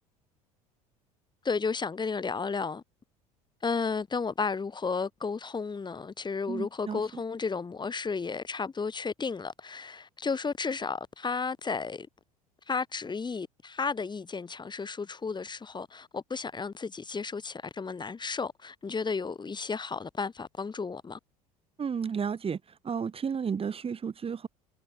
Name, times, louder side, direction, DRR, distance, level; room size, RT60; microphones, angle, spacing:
voice 1, 1.4-2.8 3.6-12.1 12.7-21.2, left 4 dB, 25° left, 6.7 m, -33 dB
voice 2, 6.5-7.0 21.8-22.6 22.8-24.5, right 6 dB, 30° right, 4.0 m, -32 dB
hypercardioid pair, 70°, 19 cm